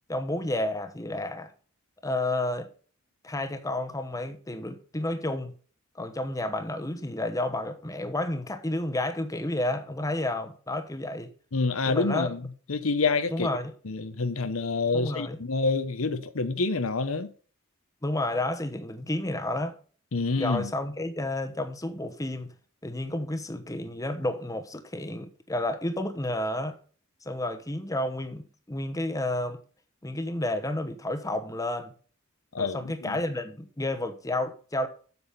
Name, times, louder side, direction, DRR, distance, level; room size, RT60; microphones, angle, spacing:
voice 1, 0.1-1.5 2.0-2.7 3.2-5.5 5.9-11.3 11.8-12.3 13.3-13.7 14.9-15.4 18.0-19.7 20.4-22.5 22.8-26.8 27.2-29.6 30.0-31.9 32.6-34.9, left 1 dB, 15° left, 1.0 m, -31 dB
voice 2, 11.5-12.4 12.7-13.5 13.9-17.3 20.1-20.7 32.5-33.2, left 3 dB, 90° left, 0.9 m, -27 dB
8.3 x 7.1 x 5.7 m
head